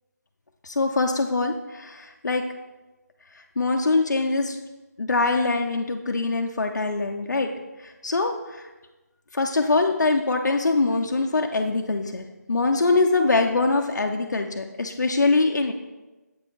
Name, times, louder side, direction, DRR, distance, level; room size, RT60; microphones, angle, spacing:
voice 1, 0.6-2.0 2.2-2.4 3.3-4.6 5.0-7.5 7.8-8.7 9.3-15.7, left 3 dB, 75° left, 3 dB, 0.6 m, -23 dB
7.6 x 4.4 x 4.5 m, 1.1 s
figure-of-eight pair, 170°, 10 cm